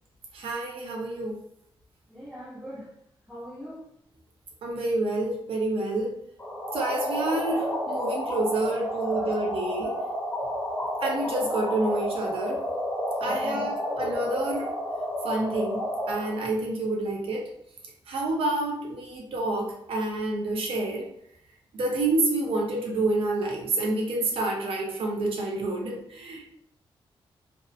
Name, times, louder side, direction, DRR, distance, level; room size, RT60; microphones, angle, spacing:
voice 1, 0.3-1.4 4.6-6.2 6.7-10.0 11.0-12.6 13.2-14.7 15.2-17.5 18.1-21.1 21.7-26.5, right 2 dB, 70° right, -1 dB, 0.6 m, -28 dB
voice 2, 2.1-2.9 3.3-3.8 9.1-10.0 13.2-13.6, equal, ahead, -6 dB, 0.5 m, -43 dB
sound 1, 6.4-16.4, equal, 20° left, 0.9 m, -30 dB
2.6 x 2.0 x 2.6 m, 0.73 s
wide cardioid pair, 135°, 10 cm